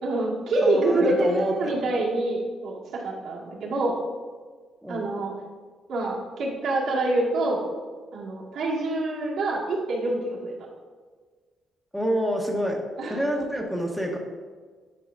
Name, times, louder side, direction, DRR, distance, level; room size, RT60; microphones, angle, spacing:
voice 1, 0.0-4.0 4.9-5.3 5.9-7.6 8.1-10.5 13.0-13.5, right 2 dB, 75° right, -4 dB, 2.0 m, -26 dB
voice 2, 0.6-1.7 4.8-5.0 11.9-12.8 13.1-14.2, equal, ahead, -1 dB, 1.0 m, -27 dB
10.5 x 4.7 x 2.6 m, 1.5 s
cardioid pair, 90°, 0 cm